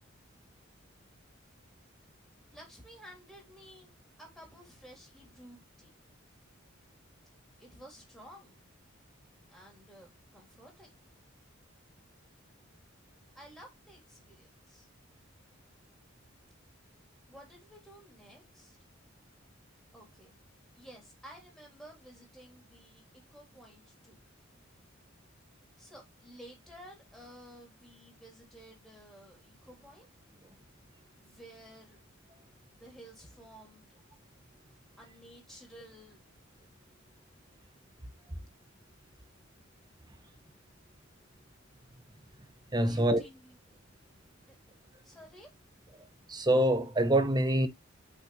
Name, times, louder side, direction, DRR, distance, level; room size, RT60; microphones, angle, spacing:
voice 1, 2.5-3.9 4.2-5.9 7.6-8.7 9.5-11.0 13.3-14.9 17.3-18.8 19.9-20.3 20.7-23.0 23.3-24.2 25.8-30.0 31.2-32.0 32.7-33.9 35.0-36.2 42.9-43.5 44.1-44.2 44.5-44.6 45.0-45.5, equal, ahead, 3.3 m, -53 dB
voice 2, 42.7-43.2 46.3-47.7, right 1 dB, 20° right, 1.0 m, -25 dB
6.9 x 5.6 x 3.2 m
head